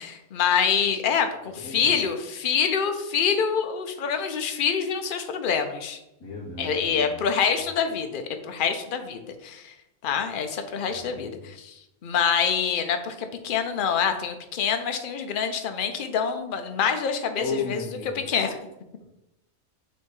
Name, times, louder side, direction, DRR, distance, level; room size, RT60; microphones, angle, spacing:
voice 1, 0.0-6.0 6.6-9.7 10.0-11.7 12.0-17.8 18.1-18.6, left 7 dB, 60° left, 6 dB, 0.5 m, -26 dB
voice 2, 1.6-1.9 6.2-7.1 10.9-11.4 17.4-18.3, left 3 dB, 15° left, -9 dB, 2.3 m, -35 dB
5.9 x 3.5 x 4.6 m, 0.89 s
omnidirectional pair, 1.6 m